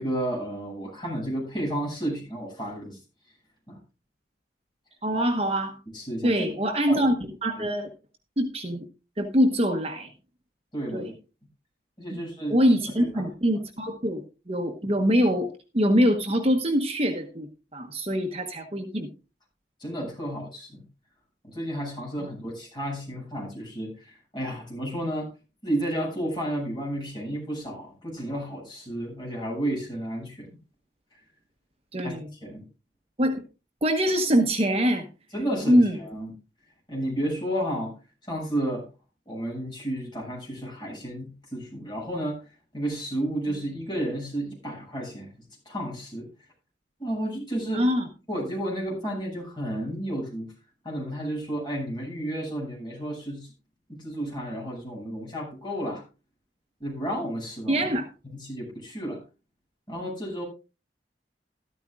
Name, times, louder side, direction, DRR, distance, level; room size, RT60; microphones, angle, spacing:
voice 1, 0.0-3.0 3.7-3.8 5.9-6.5 6.9-7.0 10.7-11.1 12.0-12.6 13.0-13.2 19.8-20.8 21.4-25.3 25.6-30.5 31.1-31.2 32.0-32.1 32.4-32.6 35.3-36.3 36.9-37.9 38.3-38.8 39.3-42.4 42.7-46.3 47.0-47.9 48.3-50.5 50.8-53.5 53.9-56.0 56.8-57.9 58.3-59.2 59.9-60.4, right 1 dB, 25° left, -2 dB, 7.2 m, -32 dB
voice 2, 5.0-5.7 6.2-7.1 7.4-7.9 8.4-8.8 9.2-10.1 10.9-11.1 12.1-12.2 12.5-15.5 15.7-17.5 17.7-19.1 22.2-22.3 31.9-32.3 33.2-33.4 33.8-35.1 35.7-36.0 47.7-48.0 57.7-58.1, equal, 35° right, 5 dB, 1.1 m, -24 dB
13.5 x 13.5 x 2.4 m, 0.31 s
head